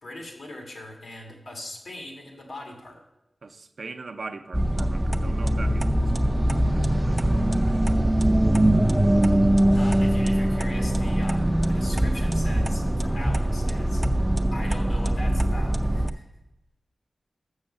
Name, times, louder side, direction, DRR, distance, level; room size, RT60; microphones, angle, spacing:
voice 1, 0.0-3.0 9.7-14.0 14.5-16.2, left 1 dB, 80° left, 1.7 m, -40 dB
voice 2, 3.4-6.4 6.7-7.4, right 3 dB, 70° right, 0.5 m, -41 dB
sound 1, 4.5-16.1, right 1 dB, 15° right, 0.4 m, -22 dB
7.0 x 6.4 x 6.4 m
wide cardioid pair, 85°, 0 cm